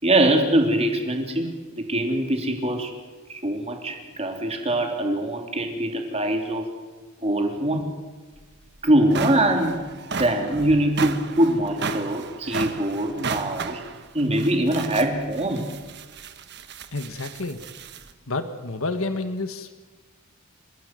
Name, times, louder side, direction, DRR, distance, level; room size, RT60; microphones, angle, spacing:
voice 1, 0.0-2.9 3.3-6.7 7.2-7.8 8.8-9.8 10.2-13.8 14.1-15.7, right 1 dB, 30° right, 3 dB, 3.4 m, -23 dB
sound 1, 8.4-8.5 8.9-18.1, right 5 dB, 50° right, 1.3 m, -34 dB
voice 2, 16.9-17.6 18.3-19.7, left 2 dB, 70° left, 9 dB, 1.6 m, -29 dB
30.0 x 15.5 x 7.8 m, 1.3 s
head